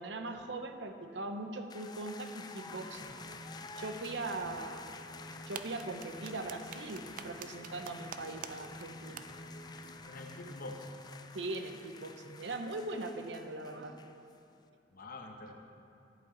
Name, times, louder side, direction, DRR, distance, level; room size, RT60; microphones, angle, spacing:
voice 1, 0.0-3.2 3.8-4.9 5.5-9.3 11.3-14.0, right 2 dB, 70° right, 6 dB, 0.8 m, -40 dB
sound 1, 1.7-14.4, left 4 dB, 25° left, 0.3 m, -51 dB
sound 2, 2.6-10.0, equal, 70° left, 1.3 m, -51 dB
sound 3, 5.3-8.5 8.8-8.9 9.2-9.3, right 9 dB, 50° right, 0.4 m, -44 dB
voice 2, 10.0-11.0 14.9-15.5, left 2 dB, 55° left, 3 dB, 0.9 m, -46 dB
10.5 x 8.6 x 3.9 m, 2.7 s
head